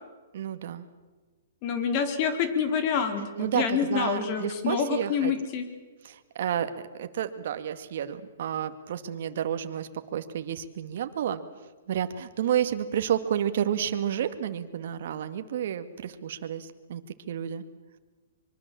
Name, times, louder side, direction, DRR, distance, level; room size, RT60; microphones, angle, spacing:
voice 1, 0.3-0.9 3.4-5.3 6.0-11.4 11.9-17.0 17.3-17.6, right 9 dB, 60° right, 9 dB, 2.0 m, -30 dB
voice 2, 1.6-5.7, left 7 dB, 40° left, 7 dB, 3.8 m, -27 dB
25.0 x 23.0 x 7.7 m, 1.3 s
hypercardioid pair, 135°, 0 cm